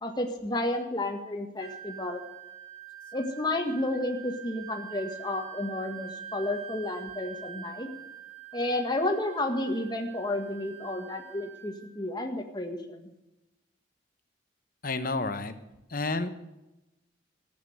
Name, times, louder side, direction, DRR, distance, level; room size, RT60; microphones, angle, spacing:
voice 1, 0.0-2.2 3.1-7.9 8.5-13.1, left 1 dB, 20° left, 4 dB, 1.7 m, -31 dB
Wind instrument woodwind instrument, 1.6-12.0, right 9 dB, 30° right, 1.9 m, -45 dB
voice 2, 14.8-15.5 15.9-16.3, left 3 dB, 45° left, 10 dB, 1.1 m, -30 dB
14.5 x 8.8 x 8.0 m, 0.96 s
head